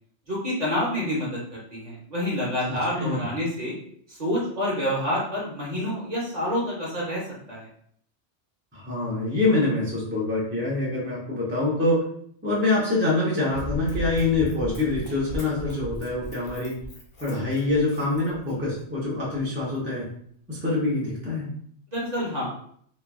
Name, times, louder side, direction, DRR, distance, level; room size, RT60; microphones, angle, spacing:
voice 1, 0.3-3.7 4.1-7.2 7.5-7.7 21.9-22.5, equal, 40° right, -5 dB, 0.9 m, -28 dB
voice 2, 2.7-3.2 8.7-12.0 12.4-16.7 17.2-20.1 20.5-21.5, left 2 dB, 15° right, -5 dB, 0.5 m, -25 dB
Run, 13.5-18.8 19.4-19.5, equal, 55° left, 0.9 m, -37 dB
3.0 x 2.3 x 2.3 m, 0.63 s
omnidirectional pair, 1.3 m